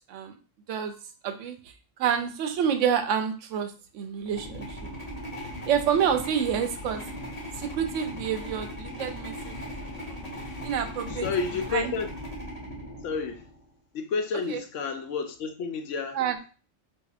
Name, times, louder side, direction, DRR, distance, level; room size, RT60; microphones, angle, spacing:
voice 1, 1.2-1.6 2.0-4.9 5.7-7.0 7.6-10.2 10.6-11.2 11.7-11.9 16.2-16.3, right 8 dB, 80° right, 7 dB, 0.9 m, -28 dB
sound 1, 4.2-13.6, equal, 35° left, 0.9 m, -38 dB
voice 2, 11.1-12.1 13.0-13.5 13.9-16.2, left 5 dB, 80° left, 6 dB, 1.0 m, -30 dB
4.0 x 2.7 x 2.4 m, 0.36 s
omnidirectional pair, 1.3 m